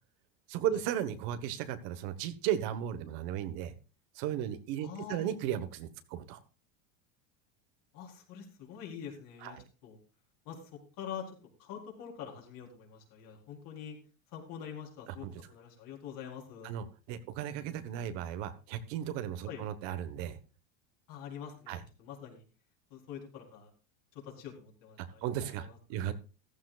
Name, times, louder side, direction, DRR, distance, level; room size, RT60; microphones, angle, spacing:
voice 1, 0.5-3.7 4.1-6.4 9.4-9.6 15.2-15.3 16.6-20.4 21.7-21.8 25.0-26.1, right 10 dB, 60° right, 10 dB, 1.4 m, -35 dB
voice 2, 4.8-5.3 7.9-9.6 9.8-10.0 10.4-14.0 14.3-16.8 19.5-19.6 21.1-22.4 22.9-23.7 24.2-26.1, left 8 dB, 55° left, 0 dB, 4.2 m, -45 dB
14.5 x 13.5 x 2.5 m, 0.33 s
supercardioid pair, 135°, 41 cm